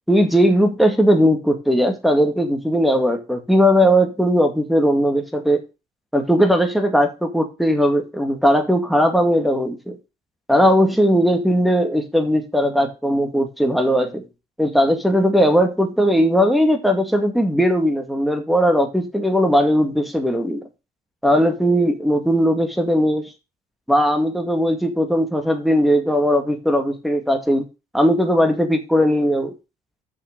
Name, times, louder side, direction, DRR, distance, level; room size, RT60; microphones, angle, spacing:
voice 1, 0.1-5.6 6.1-10.0 10.5-14.2 14.6-20.6 21.2-23.3 23.9-27.7 27.9-29.5, equal, ahead, 6 dB, 2.0 m, -18 dB
6.6 x 5.9 x 6.7 m, 0.28 s
cardioid pair, 110°, 17 cm